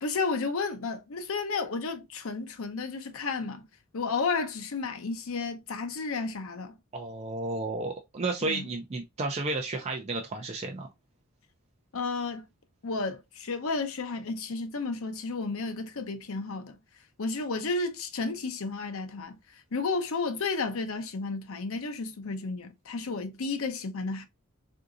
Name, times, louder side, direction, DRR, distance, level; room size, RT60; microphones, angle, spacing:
voice 1, 0.0-3.6 3.9-6.8 8.4-8.7 11.9-12.5 12.8-16.8 17.2-19.4 19.7-24.3, left 4 dB, 70° left, 0.7 m, -32 dB
voice 2, 6.9-10.9, right 2 dB, 30° right, 0.4 m, -32 dB
3.7 x 2.6 x 2.4 m
head